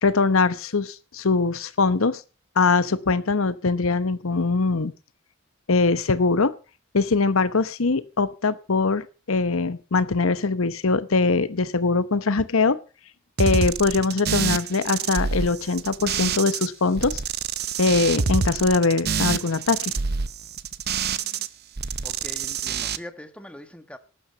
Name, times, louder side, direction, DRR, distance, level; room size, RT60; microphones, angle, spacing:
voice 1, 0.0-2.2 2.6-4.9 5.7-6.5 6.9-12.8 13.4-17.2 17.8-19.9, left 4 dB, 75° left, 0.9 m, -22 dB
sound 1, 13.4-16.7 17.0-21.5 21.8-23.0, right 6 dB, 50° right, 0.8 m, -27 dB
voice 2, 22.0-24.0, left 1 dB, 5° left, 1.3 m, -42 dB
12.5 x 9.0 x 6.9 m
head